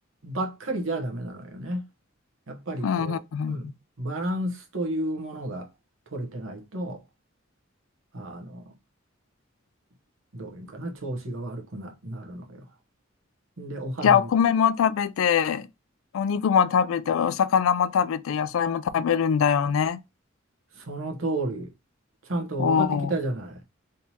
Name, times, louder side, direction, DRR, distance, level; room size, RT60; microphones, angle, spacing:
voice 1, 0.2-1.9 2.5-3.2 3.5-5.7 6.1-7.0 8.1-8.7 10.3-12.7 13.6-14.3 20.7-21.7 22.2-23.6, right 1 dB, 85° right, 1.0 m, -32 dB
voice 2, 2.8-3.6 14.0-15.7 16.1-20.0 22.6-23.1, left 7 dB, 90° left, 0.3 m, -23 dB
3.4 x 2.9 x 2.8 m
head